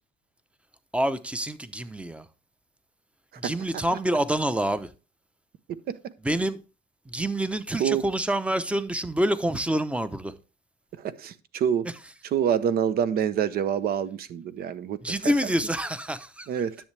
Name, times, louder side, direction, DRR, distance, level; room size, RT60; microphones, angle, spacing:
voice 1, 0.9-2.3 3.4-4.9 6.2-6.6 7.1-10.3 15.0-16.5, right 1 dB, 5° right, 0.7 m, -27 dB
voice 2, 3.3-3.8 5.7-6.0 7.8-8.0 10.9-11.9 12.2-15.0 15.2-15.5 16.5-16.8, right 8 dB, 65° right, 0.9 m, -27 dB
10.0 x 7.3 x 3.3 m
cardioid pair, 110°, 17 cm